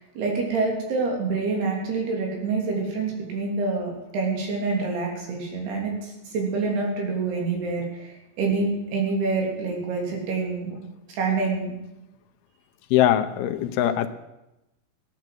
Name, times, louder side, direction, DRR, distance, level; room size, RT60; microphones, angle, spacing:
voice 1, 0.2-10.8 11.1-11.7, right 4 dB, 80° right, 0 dB, 5.1 m, -27 dB
voice 2, 12.9-14.1, left 11 dB, 80° left, 7 dB, 2.8 m, -21 dB
16.0 x 9.5 x 7.6 m, 0.95 s
omnidirectional pair, 4.5 m